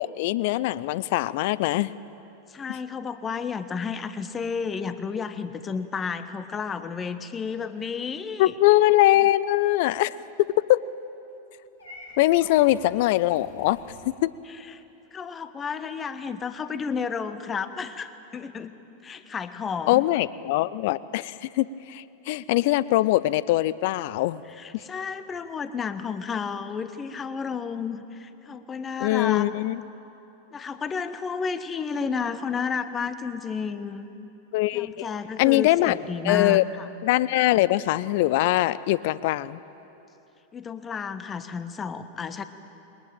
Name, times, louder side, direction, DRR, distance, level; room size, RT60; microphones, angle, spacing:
voice 1, 0.0-1.9 8.4-10.1 10.7-10.8 12.2-13.8 14.2-14.3 19.9-24.4 29.0-29.8 34.5-35.1 35.4-36.0 36.2-36.6 37.0-39.6, left 16 dB, 50° left, 18 dB, 0.5 m, -22 dB
voice 2, 2.5-8.5 14.6-14.8 15.1-18.7 19.0-20.0 24.5-29.5 30.5-34.1 34.7-36.9 40.5-42.4, left 5 dB, 20° left, 12 dB, 1.1 m, -32 dB
Purr / Meow, 11.8-14.0, left 2 dB, 80° left, 6.1 m, -48 dB
21.5 x 20.5 x 9.0 m, 3.0 s
figure-of-eight pair, 90°, 0 cm